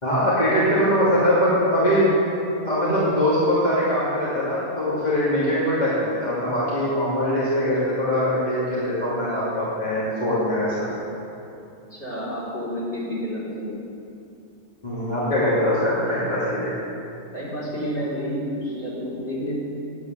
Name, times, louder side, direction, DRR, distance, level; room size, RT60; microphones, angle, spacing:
voice 1, 0.0-2.1 2.6-10.9 14.8-16.7, equal, 30° left, -10 dB, 3.1 m, -22 dB
voice 2, 11.9-13.8 17.3-19.6, equal, 50° left, -9 dB, 4.4 m, -29 dB
9.9 x 8.8 x 9.3 m, 2.7 s
omnidirectional pair, 1.5 m